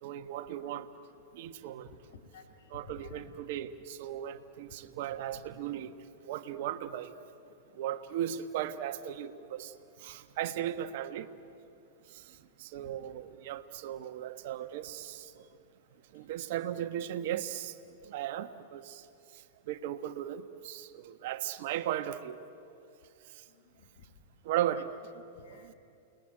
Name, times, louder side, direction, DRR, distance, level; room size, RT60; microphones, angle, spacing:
voice 1, 0.0-0.9 1.3-1.9 2.7-5.9 6.3-7.1 7.7-11.3 12.1-15.5 16.1-17.8 18.0-19.1 19.3-22.4 23.3-23.4 24.4-24.9, right 11 dB, 55° right, 10 dB, 1.4 m, -37 dB
voice 2, 2.1-3.3 5.3-5.4 12.8-12.9 23.5-23.9 24.7-24.8 25.4-25.7, left 5 dB, 60° left, 3 dB, 3.3 m, -52 dB
29.5 x 20.0 x 9.0 m, 2.7 s
figure-of-eight pair, 100°, 0 cm